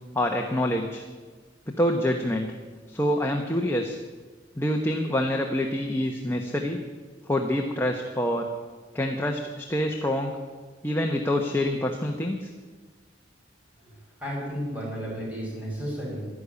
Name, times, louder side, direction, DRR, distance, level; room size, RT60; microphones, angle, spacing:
voice 1, 0.1-1.0 1.7-2.5 2.9-4.0 4.6-6.8 7.3-8.5 8.9-10.3 10.8-12.5, left 1 dB, 15° left, 2 dB, 1.1 m, -26 dB
voice 2, 14.2-16.4, equal, 10° right, -5 dB, 6.4 m, -33 dB
12.5 x 11.5 x 9.7 m, 1.4 s
head